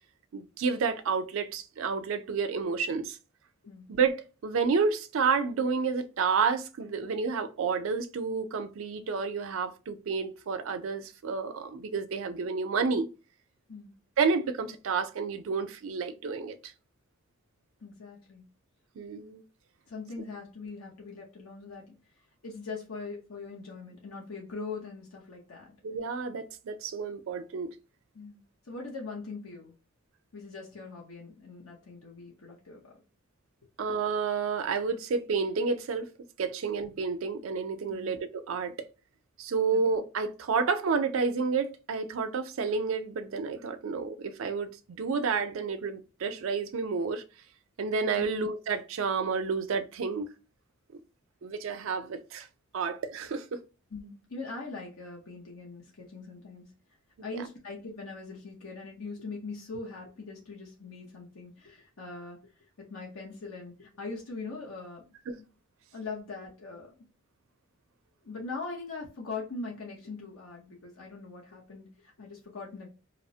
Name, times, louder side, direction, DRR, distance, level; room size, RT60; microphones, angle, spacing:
voice 1, 0.3-3.2 3.9-13.1 14.2-16.7 19.0-19.4 25.8-27.7 33.8-36.1 36.4-38.7 39.4-47.2 47.8-50.3 50.9-51.0 51.4-52.5 52.7-53.6 65.3-65.4, right 5 dB, 70° right, 0.4 m, -30 dB
voice 2, 17.8-18.5 19.9-22.0 22.4-25.7 28.1-29.7 30.3-32.9 37.9-38.1 39.7-39.8 48.1-48.2 53.9-56.7 57.2-62.4 62.8-65.0 65.4-65.5 65.9-66.9 68.2-72.9, left 3 dB, 80° left, 0.8 m, -41 dB
2.9 x 2.0 x 2.6 m
head